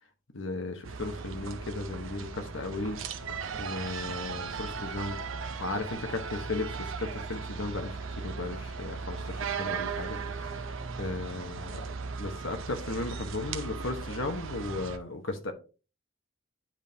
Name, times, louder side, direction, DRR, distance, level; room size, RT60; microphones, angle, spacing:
voice 1, 0.3-3.0 3.6-5.2 5.6-11.8 12.2-15.5, left 2 dB, 65° left, 1.0 m, -36 dB
sound 1, 0.8-15.0, right 5 dB, 70° right, 0.6 m, -37 dB
10.0 x 3.5 x 2.7 m
head